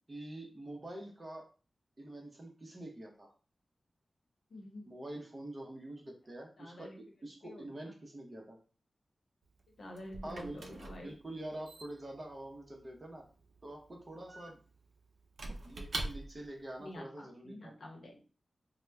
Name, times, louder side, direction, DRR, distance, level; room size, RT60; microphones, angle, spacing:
voice 1, 0.1-1.5 2.0-3.3 4.9-8.6 10.2-13.3 13.6-14.6 15.6-17.7, right 1 dB, 30° right, 1 dB, 0.7 m, -46 dB
voice 2, 4.5-4.9 6.6-7.0 7.4-7.9 9.8-11.1 16.8-18.2, left 1 dB, 85° left, 1 dB, 0.8 m, -48 dB
Squeak / Wood, 9.4-16.6, right 2 dB, 70° right, 0.4 m, -45 dB
2.9 x 2.1 x 3.3 m, 0.36 s
wide cardioid pair, 120°, 0 cm